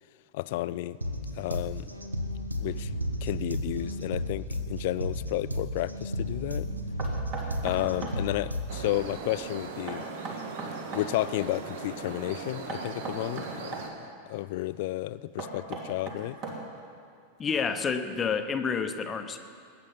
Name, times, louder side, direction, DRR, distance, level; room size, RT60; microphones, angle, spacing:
voice 1, 0.3-1.0 1.3-1.9 2.6-2.9 3.2-6.7 7.6-10.0 10.9-16.4, left 16 dB, 50° left, 17 dB, 0.3 m, -32 dB
sound 1, 1.0-9.0, equal, 85° right, 1.1 m, -33 dB
Knock, 7.0-8.2 9.9-11.1 12.7-13.9 15.4-16.8, right 3 dB, 35° right, 2.8 m, -37 dB
sound 2, 8.7-13.9, right 4 dB, 55° right, 1.6 m, -39 dB
voice 2, 17.4-19.4, left 6 dB, 20° left, 8 dB, 1.0 m, -29 dB
20.5 x 9.6 x 5.6 m, 2.3 s
figure-of-eight pair, 90°, 0 cm